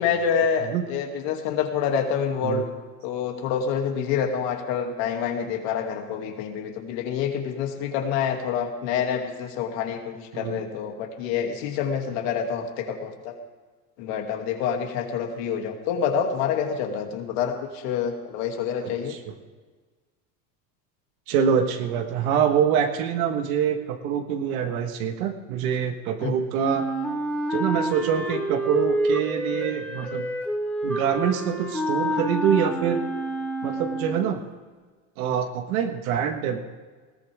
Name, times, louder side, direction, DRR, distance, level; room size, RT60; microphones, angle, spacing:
voice 1, 0.0-2.7 3.0-13.3 14.0-19.2 26.2-26.3, left 7 dB, 75° left, 3 dB, 2.7 m, -27 dB
voice 2, 18.8-19.3 21.3-26.9 27.5-30.2 30.8-33.0 33.6-34.4 35.2-36.6, right 8 dB, 90° right, 5 dB, 1.6 m, -25 dB
Wind instrument woodwind instrument, 26.6-34.3, right 1 dB, 5° left, 2.8 m, -28 dB
20.0 x 15.5 x 3.6 m, 1.4 s
supercardioid pair, 125°, 41 cm